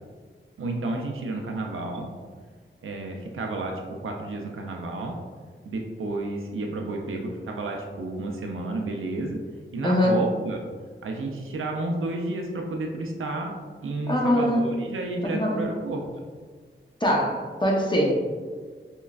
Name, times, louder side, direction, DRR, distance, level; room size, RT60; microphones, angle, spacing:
voice 1, 0.6-2.1 2.8-5.2 5.6-9.4 9.7-10.6 11.0-13.5 13.8-16.1, right 2 dB, 80° right, 2 dB, 0.5 m, -31 dB
voice 2, 9.8-10.2 14.1-14.6 15.3-15.6 17.0-18.2, equal, 20° left, -2 dB, 0.7 m, -22 dB
5.4 x 2.2 x 2.4 m, 1.6 s
cardioid pair, 50°, 21 cm